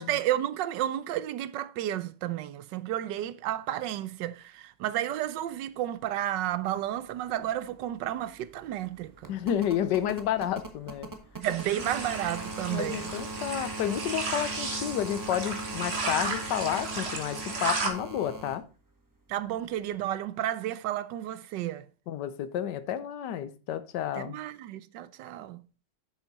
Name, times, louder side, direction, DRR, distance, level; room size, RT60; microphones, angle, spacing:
voice 1, 0.0-9.3 11.3-13.1 19.3-21.9 24.2-25.6, right 12 dB, 85° right, 1.3 m, -32 dB
sound 1, 7.3-7.4 7.6-18.6 20.0-20.1, right 2 dB, 15° right, 0.9 m, -40 dB
voice 2, 9.3-11.1 12.7-18.6 22.1-24.4, left 10 dB, 75° left, 1.3 m, -31 dB
sound 2, 11.4-17.9, right 3 dB, 40° right, 1.6 m, -34 dB
8.1 x 7.0 x 4.1 m
omnidirectional pair, 1.9 m